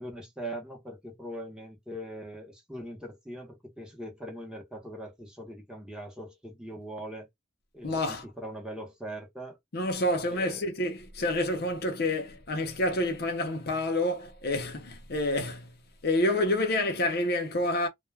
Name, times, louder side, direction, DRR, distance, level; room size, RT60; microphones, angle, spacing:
voice 1, 0.0-7.3 7.7-9.6 10.3-10.6, right 1 dB, 5° right, 0.8 m, -41 dB
voice 2, 7.8-8.2 9.7-15.7 16.0-17.9, left 1 dB, 50° left, 0.6 m, -28 dB
2.2 x 2.1 x 3.2 m
head